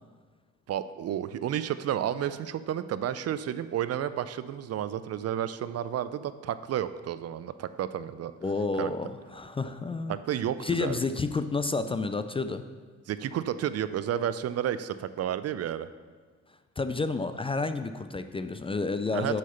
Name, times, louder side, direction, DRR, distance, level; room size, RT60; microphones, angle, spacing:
voice 1, 0.7-8.3 8.8-8.9 10.1-11.0 13.1-15.9 19.1-19.4, right 10 dB, 55° right, 13 dB, 0.5 m, -31 dB
voice 2, 8.4-10.1 10.6-12.6 16.8-19.4, left 3 dB, 20° left, 10 dB, 0.3 m, -30 dB
6.3 x 5.8 x 6.9 m, 1.5 s
cardioid pair, 90°, 30 cm